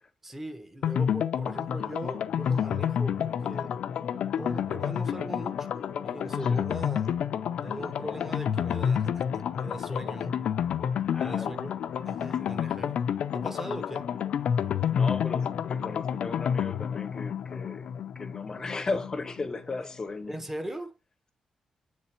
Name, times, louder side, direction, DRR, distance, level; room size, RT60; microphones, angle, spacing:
voice 1, 0.2-3.7 4.4-5.7 6.0-7.2 7.6-10.4 11.2-11.7 12.0-12.9 13.3-14.0 20.3-20.9, right 1 dB, 15° right, 1.0 m, -39 dB
sound 1, 0.8-19.4 19.7-19.8 20.1-20.2, left 8 dB, 90° left, 0.4 m, -29 dB
voice 2, 6.4-6.7 11.1-11.6 12.3-12.6 14.7-20.4, left 3 dB, 30° left, 0.6 m, -36 dB
8.2 x 3.3 x 4.4 m
wide cardioid pair, 115°, 2 cm